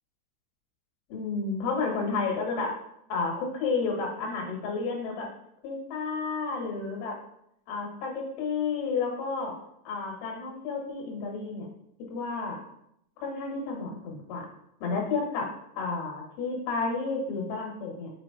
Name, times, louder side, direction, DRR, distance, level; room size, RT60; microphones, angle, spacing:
voice 1, 1.1-2.7 3.1-5.3 5.6-7.2 7.7-9.5 9.9-11.7 12.1-12.6 13.2-14.5 14.8-15.5 15.8-18.1, left 4 dB, 90° left, 0 dB, 3.9 m, -31 dB
8.3 x 5.0 x 2.9 m, 0.76 s
omnidirectional pair, 5.2 m